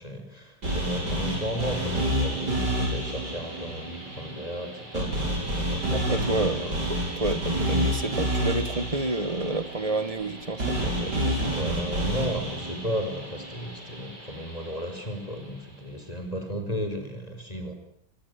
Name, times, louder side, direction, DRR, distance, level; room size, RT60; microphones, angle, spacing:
voice 1, 0.0-7.0 11.5-17.7, equal, 20° left, 6 dB, 5.2 m, -34 dB
sound 1, 0.6-14.8, equal, 75° right, 8.2 m, -29 dB
voice 2, 5.9-11.6, right 2 dB, 20° right, 13 dB, 1.4 m, -30 dB
26.5 x 21.0 x 9.9 m, 0.71 s
omnidirectional pair, 1.8 m